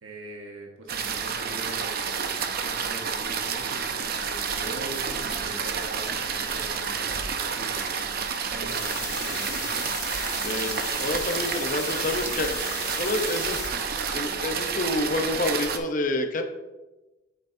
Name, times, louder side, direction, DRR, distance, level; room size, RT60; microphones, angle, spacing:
voice 1, 0.0-8.0 8.5-9.6, right 1 dB, 80° right, 0 dB, 1.2 m, -42 dB
sound 1, 0.9-15.8, right 6 dB, 50° right, 0.6 m, -30 dB
sound 2, 8.7-13.7, left 3 dB, 15° left, 1.1 m, -36 dB
voice 2, 10.4-12.6 13.0-13.6 14.1-16.4, left 2 dB, 40° left, 5 dB, 0.7 m, -28 dB
8.2 x 6.9 x 2.7 m, 1.1 s
head